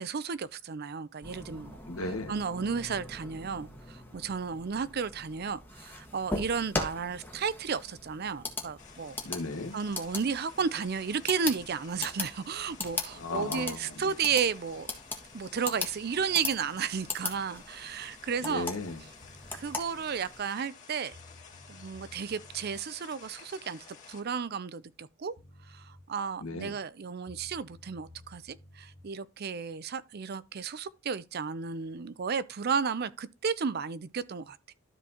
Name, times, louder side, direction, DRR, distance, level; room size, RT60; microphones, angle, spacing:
voice 1, 0.0-1.8 2.3-9.2 9.7-14.9 15.3-18.7 19.5-21.1 21.7-25.3 25.7-34.7, right 6 dB, 45° right, 0.5 m, -33 dB
sound 1, 1.2-20.4, left 2 dB, 10° left, 1.4 m, -40 dB
voice 2, 1.9-2.3 9.2-9.8 13.1-14.1 18.4-19.0 26.4-26.7, left 2 dB, 85° left, 1.5 m, -36 dB
sound 2, 8.8-24.2, left 5 dB, 35° left, 2.1 m, -52 dB
sound 3, 19.2-19.7 20.8-20.9 21.1-22.8 25.0-25.1 25.4-26.0 27.3-29.0, left 1 dB, 85° right, 4.2 m, -53 dB
13.0 x 4.5 x 2.8 m
head